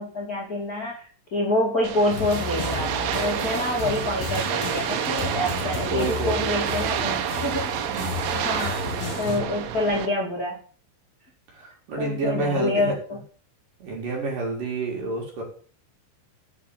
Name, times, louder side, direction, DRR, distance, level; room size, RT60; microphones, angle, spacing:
voice 1, 0.0-7.8 8.3-8.8 9.2-10.6 12.0-13.2, left 1 dB, 35° left, -3 dB, 1.5 m, -27 dB
sound 1, 1.8-10.1, right 9 dB, 75° right, 3.4 m, -29 dB
sound 2, 2.1-9.4, left 8 dB, 70° left, 4.3 m, -34 dB
voice 2, 5.2-7.3 7.8-8.1 11.5-13.0 13.8-15.4, right 3 dB, 45° right, -2 dB, 5.2 m, -30 dB
9.2 x 7.2 x 8.3 m, 0.43 s
omnidirectional pair, 5.8 m